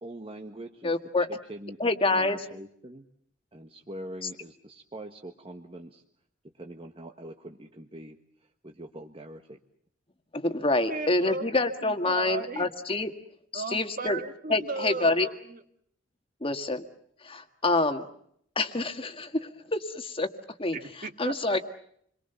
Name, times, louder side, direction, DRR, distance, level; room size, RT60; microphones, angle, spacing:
voice 1, 0.0-1.0 1.5-3.1 3.5-6.0 6.5-8.2 8.6-9.6, right 1 dB, 30° right, 3 dB, 1.5 m, -43 dB
voice 2, 0.8-1.3 1.8-2.4 10.3-13.1 13.5-14.2 14.5-15.3 16.4-16.8 17.2-18.1 18.6-20.3 20.6-20.8 21.2-21.6, left 2 dB, 30° left, 7 dB, 1.8 m, -27 dB
voice 3, 10.9-11.5 11.8-12.7 13.5-15.6 20.7-21.6, right 3 dB, 45° right, 8 dB, 1.8 m, -36 dB
28.5 x 23.0 x 7.0 m, 0.68 s
head